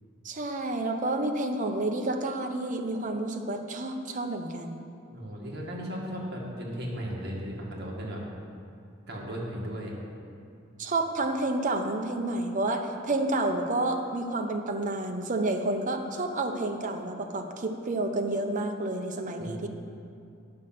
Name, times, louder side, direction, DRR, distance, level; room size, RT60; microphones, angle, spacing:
voice 1, 0.2-4.8 10.8-19.7, right 2 dB, 40° right, 4 dB, 0.8 m, -30 dB
voice 2, 5.1-8.2 9.1-9.9 19.4-19.7, equal, 55° right, -2 dB, 1.8 m, -36 dB
9.6 x 6.4 x 5.9 m, 2.5 s
head